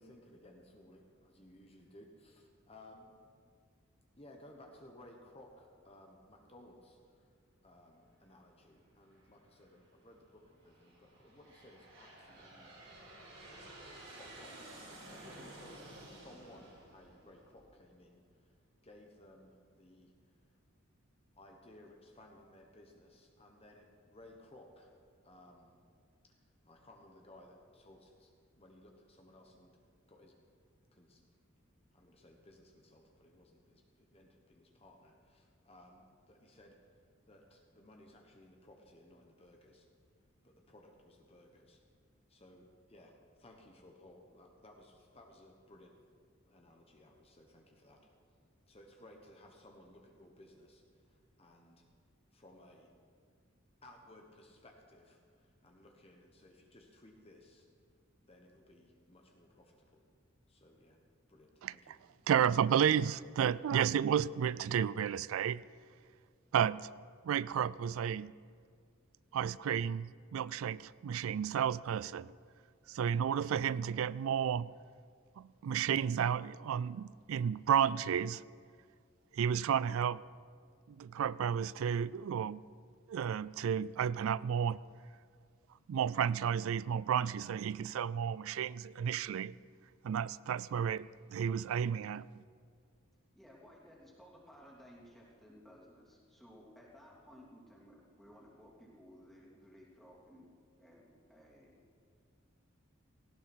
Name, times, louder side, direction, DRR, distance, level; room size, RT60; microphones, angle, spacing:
voice 1, 0.0-3.1 4.2-7.3 7.6-12.7 14.0-18.5 18.8-20.5 21.3-24.9 25.2-25.7 26.3-29.8 30.1-30.4 30.9-31.4 31.9-39.9 40.4-41.8 42.3-46.0 46.5-48.1 48.7-51.8 52.3-52.9 53.8-57.7 58.2-60.0 60.5-61.0 61.3-62.0, left 1 dB, 30° left, 1 dB, 1.3 m, -59 dB
Aircraft, 9.1-9.7 10.4-17.9, right 1 dB, 65° right, 5.2 m, -53 dB
voice 2, 62.3-65.6 66.5-66.9 67.2-68.3 69.3-72.3 72.9-74.7 75.4-78.4 79.3-80.2 80.9-82.6 83.1-84.8 85.9-89.5 90.0-92.3, right 8 dB, 80° right, 20 dB, 0.3 m, -32 dB
voice 3, 93.3-100.5 100.8-101.8, equal, ahead, -5 dB, 3.0 m, -58 dB
18.0 x 16.5 x 4.5 m, 2.1 s
head